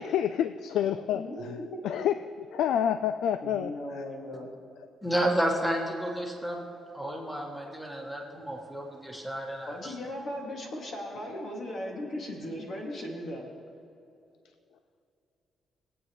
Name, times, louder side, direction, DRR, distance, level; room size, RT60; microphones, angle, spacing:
voice 1, 0.0-1.2 1.8-2.1 2.5-4.0, left 9 dB, 85° left, 10 dB, 0.3 m, -28 dB
voice 2, 1.1-1.8 3.4-4.5 9.7-13.5, left 1 dB, 55° left, -1 dB, 2.3 m, -37 dB
voice 3, 5.0-6.6 6.9-9.9, right 1 dB, 5° left, -1 dB, 1.7 m, -31 dB
23.0 x 8.7 x 3.2 m, 2.6 s
cardioid pair, 130°, 0 cm